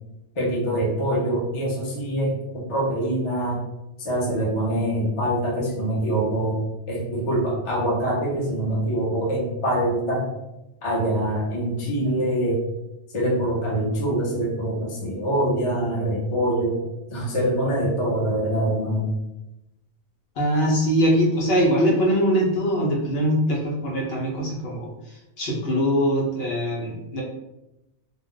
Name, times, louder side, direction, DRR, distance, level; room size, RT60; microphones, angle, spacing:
voice 1, 0.3-3.6 4.0-6.6 6.9-10.3 10.8-12.6 13.1-16.8 17.1-19.1, right 1 dB, 30° left, -3 dB, 0.7 m, -24 dB
voice 2, 20.4-27.2, equal, 65° left, -3 dB, 0.9 m, -22 dB
2.5 x 2.0 x 3.7 m, 0.93 s
omnidirectional pair, 1.2 m